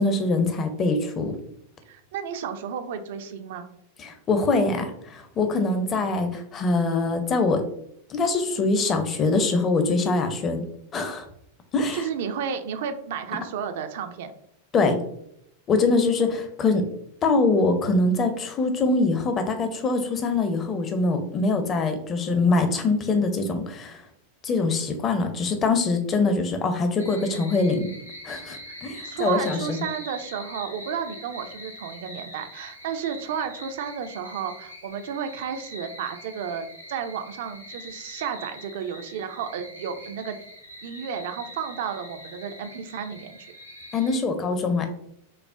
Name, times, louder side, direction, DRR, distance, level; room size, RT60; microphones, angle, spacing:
voice 1, 0.0-1.4 4.0-7.6 8.1-10.6 10.9-11.2 11.7-12.0 14.7-15.0 15.7-16.9 17.2-24.0 24.4-27.9 28.2-29.8 43.9-44.9, left 3 dB, 25° left, 6 dB, 0.5 m, -23 dB
voice 2, 1.9-3.7 11.9-14.3 28.7-28.8 29.0-40.4 40.8-43.5, right 7 dB, 55° right, 8 dB, 0.3 m, -32 dB
sound 1, 27.0-44.2, equal, 85° left, 0.7 m, -43 dB
5.3 x 2.1 x 2.3 m, 0.73 s
figure-of-eight pair, 90°, 0 cm